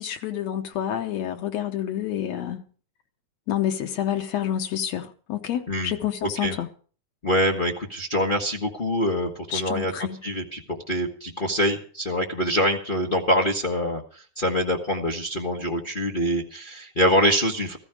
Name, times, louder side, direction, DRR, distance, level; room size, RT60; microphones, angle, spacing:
voice 1, 0.0-2.6 3.5-6.7 9.5-10.2, left 10 dB, 70° left, 2.2 m, -28 dB
voice 2, 7.2-17.8, equal, 50° left, 0.6 m, -25 dB
15.0 x 14.5 x 4.9 m
omnidirectional pair, 3.3 m